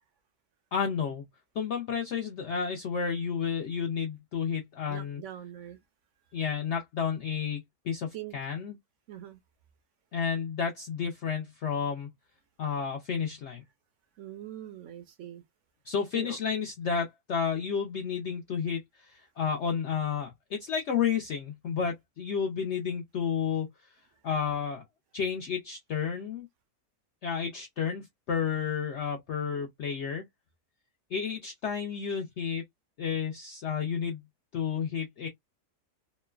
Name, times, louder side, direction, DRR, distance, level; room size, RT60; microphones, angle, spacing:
voice 1, 0.7-1.2 1.6-5.2 6.3-8.8 10.1-12.1 12.6-13.6 15.9-23.7 24.2-24.8 25.1-26.5 27.2-30.2 31.1-32.6 33.0-34.2 34.5-35.3, left 6 dB, 70° left, 0.6 m, -31 dB
voice 2, 4.9-5.8 8.1-8.4 9.1-9.4 14.2-15.4 16.1-16.4, right 12 dB, 70° right, 0.7 m, -42 dB
3.0 x 2.1 x 2.2 m
omnidirectional pair, 1.7 m